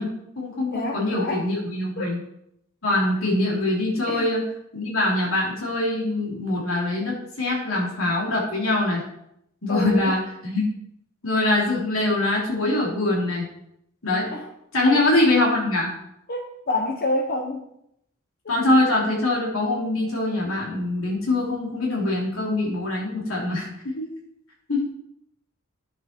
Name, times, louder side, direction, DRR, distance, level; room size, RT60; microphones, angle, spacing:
voice 1, 0.0-2.2 2.8-4.4 4.7-9.0 9.6-10.7 11.2-13.5 14.0-14.3 14.7-15.9 18.5-24.0 24.7-24.9, left 2 dB, 70° left, -3 dB, 3.2 m, -23 dB
voice 2, 0.7-1.4 2.0-2.2 4.1-4.3 9.7-10.2 14.3-14.4 14.9-15.2 16.3-17.6, left 2 dB, 45° left, 3 dB, 0.9 m, -28 dB
10.5 x 7.7 x 4.5 m, 0.78 s
head